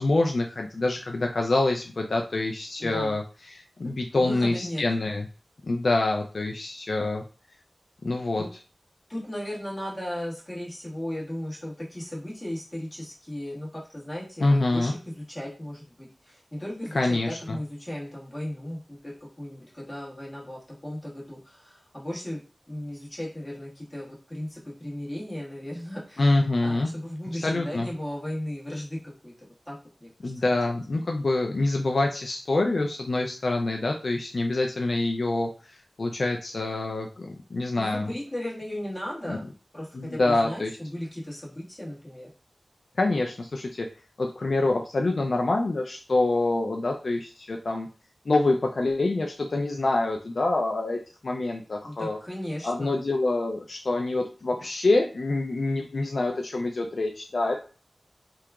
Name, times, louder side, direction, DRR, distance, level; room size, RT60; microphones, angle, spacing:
voice 1, 0.0-3.2 3.5-5.2 5.7-7.2 8.0-8.4 14.4-14.9 16.9-17.6 26.2-26.9 27.3-27.9 30.2-35.5 36.0-38.1 39.3-39.4 39.9-40.7 43.0-43.9 44.2-47.9 48.3-52.2 52.6-57.6, left 2 dB, 75° left, 2 dB, 0.3 m, -26 dB
voice 2, 2.8-3.1 4.1-4.8 8.4-8.5 9.1-22.4 22.7-30.3 30.6-31.0 37.7-42.3 51.8-52.9, left 1 dB, 25° left, -4 dB, 1.4 m, -36 dB
2.8 x 2.3 x 3.4 m, 0.36 s
wide cardioid pair, 70°, 0 cm